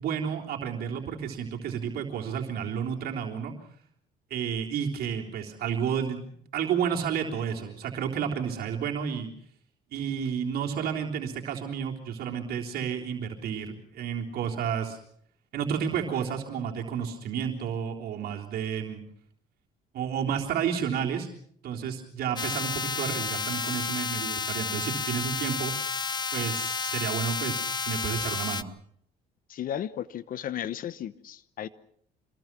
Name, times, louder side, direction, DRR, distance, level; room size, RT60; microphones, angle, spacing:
voice 1, 0.0-3.5 4.3-6.2 6.5-9.3 9.9-15.0 15.5-19.0 19.9-21.3 21.6-25.7 26.3-28.7, right 7 dB, 65° right, 0 dB, 3.6 m, -31 dB
sound 1, 22.4-28.6, left 5 dB, 25° left, 0.9 m, -31 dB
voice 2, 29.5-31.7, left 10 dB, 55° left, 16 dB, 1.0 m, -34 dB
26.5 x 21.0 x 6.1 m, 0.65 s
cardioid pair, 110°, 17 cm